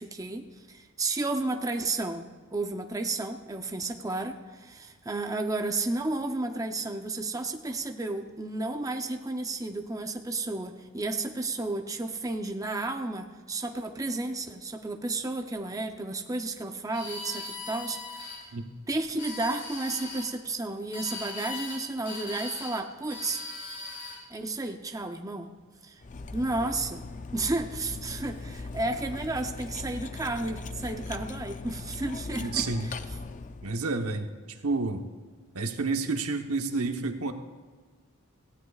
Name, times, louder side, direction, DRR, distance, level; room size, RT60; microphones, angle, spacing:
voice 1, 0.0-18.3 18.9-23.4 24.3-25.5 25.8-26.0 26.3-27.0 27.3-32.9, right 2 dB, 15° right, 5 dB, 0.6 m, -32 dB
sound 1, 16.9-18.4 19.0-20.3 20.9-21.8 22.0-22.8 23.1-24.2, left 3 dB, 55° left, 3.8 m, -39 dB
Cutlery silverware, 26.0-33.7, left 3 dB, 35° left, 0.5 m, -39 dB
voice 2, 32.4-32.9 33.6-34.3 34.6-35.0 35.5-37.3, right 3 dB, 90° right, 5 dB, 1.0 m, -29 dB
18.0 x 15.5 x 2.4 m, 1.5 s
head